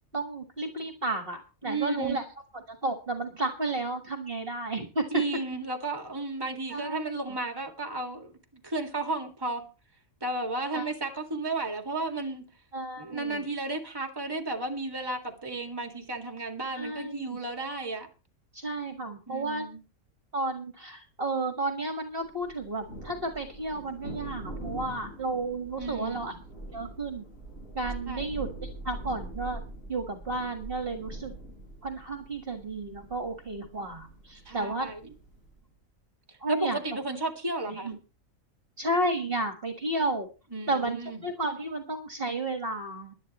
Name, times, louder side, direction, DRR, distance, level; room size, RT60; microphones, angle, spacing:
voice 1, 0.1-2.2 2.7-5.2 6.7-7.2 10.7-10.9 12.7-13.5 16.8-17.3 18.5-19.7 20.3-26.3 26.7-27.2 27.7-29.6 29.9-31.3 31.8-34.9 36.4-36.8 37.7-38.0 38.8-40.3 40.7-43.1, right 2 dB, 45° right, 5 dB, 1.8 m, -32 dB
voice 2, 1.6-2.2 5.1-9.6 10.2-12.5 13.0-18.1 19.3-19.8 25.8-26.3 28.1-28.3 34.5-35.0 36.5-37.9 40.5-41.2, right 2 dB, 15° right, 5 dB, 2.1 m, -33 dB
Thunder, 22.4-35.6, right 1 dB, 75° left, 7.9 m, -43 dB
20.5 x 11.0 x 3.0 m, 0.32 s
omnidirectional pair, 1.4 m